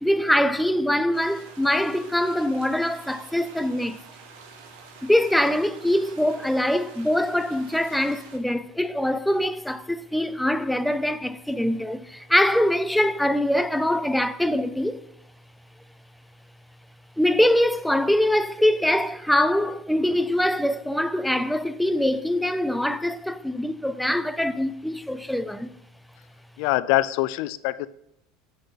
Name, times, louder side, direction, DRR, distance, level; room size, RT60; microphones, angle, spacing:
voice 1, 0.0-4.0 5.0-15.0 17.2-25.7, left 1 dB, ahead, 0.4 m, -23 dB
sound 1, 1.1-8.4, right 5 dB, 75° right, 1.5 m, -48 dB
voice 2, 26.6-27.9, left 16 dB, 65° left, 0.4 m, -24 dB
8.0 x 6.6 x 4.0 m
supercardioid pair, 130°, 0 cm